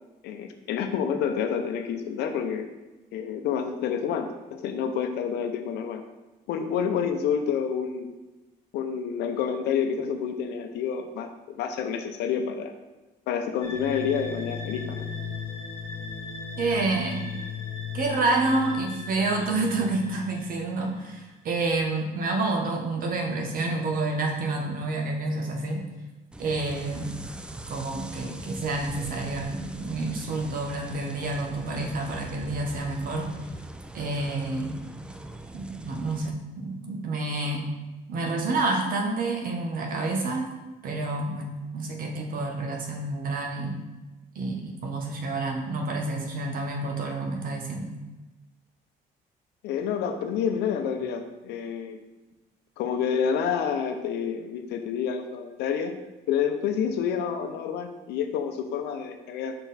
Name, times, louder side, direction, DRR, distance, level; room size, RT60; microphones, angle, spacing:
voice 1, 0.2-2.7 3.1-6.0 6.5-8.1 8.7-12.7 13.3-15.1 49.6-52.0 52.8-55.9 56.3-59.6, left 7 dB, 80° left, 7 dB, 0.6 m, -28 dB
sound 1, 13.6-21.1, left 6 dB, 35° left, 1.6 m, -37 dB
voice 2, 16.6-17.3 17.9-25.8 26.4-27.2 27.7-33.3 33.9-34.8 35.5-37.7 38.1-40.5 40.8-43.8 44.3-47.9, right 2 dB, 55° right, 2 dB, 1.2 m, -29 dB
sound 2, 26.3-36.3, right 1 dB, 5° right, 0.4 m, -41 dB
5.7 x 4.0 x 4.2 m, 1.1 s
cardioid pair, 110°, 17 cm